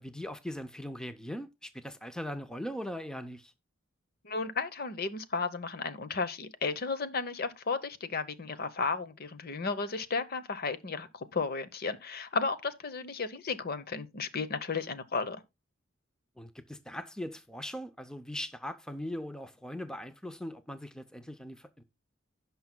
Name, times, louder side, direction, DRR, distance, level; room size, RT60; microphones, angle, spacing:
voice 1, 0.0-3.5 16.4-21.8, equal, 5° left, 0.5 m, -40 dB
voice 2, 4.2-15.4, left 4 dB, 50° left, 0.8 m, -34 dB
16.5 x 5.5 x 2.2 m
head